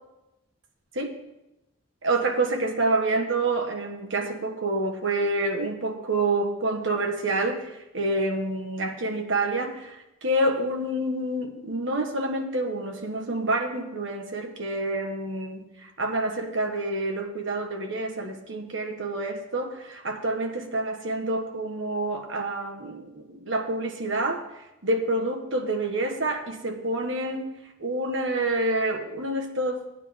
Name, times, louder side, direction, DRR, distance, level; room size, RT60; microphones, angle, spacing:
voice 1, 2.0-29.9, right 2 dB, 65° right, 4 dB, 1.4 m, -28 dB
14.0 x 9.3 x 3.7 m, 0.93 s
head